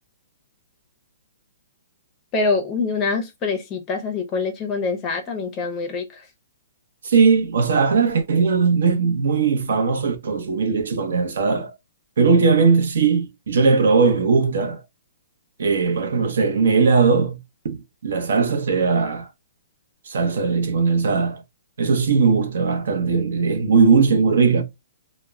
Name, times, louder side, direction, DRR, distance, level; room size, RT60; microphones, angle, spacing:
voice 1, 2.3-6.1, left 4 dB, 20° left, 0.5 m, -24 dB
voice 2, 7.0-11.7 12.2-14.8 15.6-17.4 17.6-19.3 20.1-21.4 21.8-24.6, right 5 dB, 70° right, 0.7 m, -19 dB
2.1 x 2.0 x 3.3 m
hypercardioid pair, 170°, 0 cm